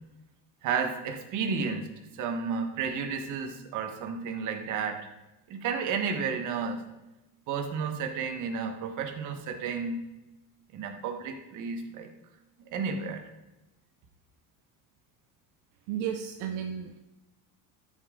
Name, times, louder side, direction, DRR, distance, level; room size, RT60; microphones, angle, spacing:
voice 1, 0.6-5.1 5.5-6.9 7.5-10.1 10.7-12.1 12.7-13.3, right 5 dB, 50° right, 5 dB, 1.3 m, -32 dB
voice 2, 15.9-17.0, right 8 dB, 70° right, 5 dB, 0.8 m, -33 dB
13.0 x 5.6 x 3.7 m, 0.99 s
cardioid pair, 145°, 38 cm